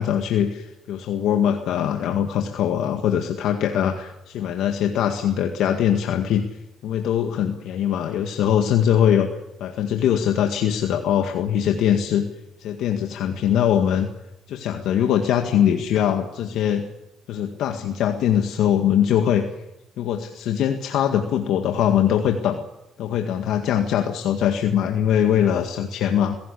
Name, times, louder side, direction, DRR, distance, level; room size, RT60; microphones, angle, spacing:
voice 1, 0.0-6.4 6.8-9.3 9.6-12.3 12.6-14.1 14.5-16.8 17.3-19.4 20.0-22.6 23.0-26.4, left 9 dB, 85° left, 5 dB, 1.8 m, -22 dB
22.0 x 17.0 x 8.4 m, 0.93 s
cardioid pair, 90°, 0 cm